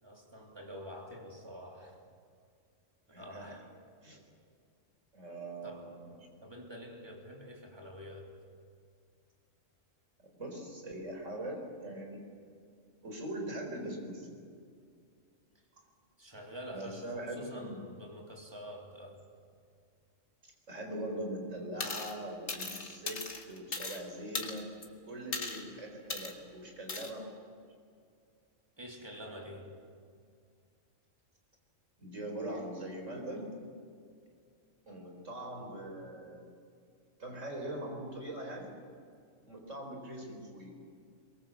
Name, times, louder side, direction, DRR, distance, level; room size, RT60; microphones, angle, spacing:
voice 1, 0.0-2.0 3.1-3.8 4.1-4.2 5.6-8.4 16.2-19.2 28.8-29.8, equal, 20° right, 0 dB, 3.3 m, -47 dB
voice 2, 3.1-3.6 4.0-4.2 5.1-6.1 10.4-12.2 13.0-14.3 16.7-17.8 20.7-27.3 32.0-33.6 34.9-36.5 37.2-38.7 39.4-40.8, right 1 dB, 70° right, 2 dB, 4.6 m, -41 dB
sound 1, 21.8-22.1 22.5-24.0 24.3-24.8 25.3-25.6 26.1-26.3 26.9-27.1, left 3 dB, 60° left, 2.2 m, -38 dB
23.0 x 23.0 x 7.5 m, 2.3 s
omnidirectional pair, 1.4 m